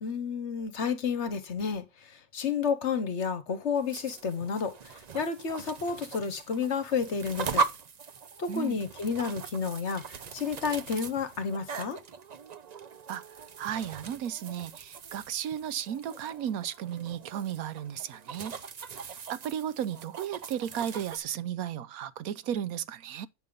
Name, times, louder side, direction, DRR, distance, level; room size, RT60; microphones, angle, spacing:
voice 1, 0.0-7.6 8.4-12.0, left 6 dB, 55° left, 1.2 m, -31 dB
sound 1, 3.7-21.2, right 4 dB, 55° right, 0.4 m, -39 dB
voice 2, 8.5-8.8 13.1-13.2 13.6-18.5 19.0-23.3, right 9 dB, 80° right, 1.1 m, -34 dB
8.3 x 5.4 x 5.0 m
omnidirectional pair, 1.6 m